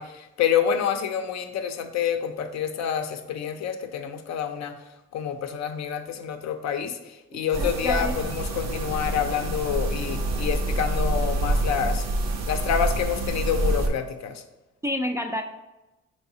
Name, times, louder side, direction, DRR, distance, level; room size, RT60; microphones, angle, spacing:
voice 1, 0.0-4.7 5.1-12.0 12.5-14.4, left 8 dB, 60° left, 7 dB, 0.5 m, -28 dB
voice 2, 7.3-8.1 14.8-15.4, left 1 dB, 10° right, 2 dB, 0.3 m, -29 dB
sound 1, 7.5-13.9, right 2 dB, 60° right, 0.6 m, -27 dB
4.6 x 3.2 x 2.7 m, 1.0 s
cardioid pair, 90°, 30 cm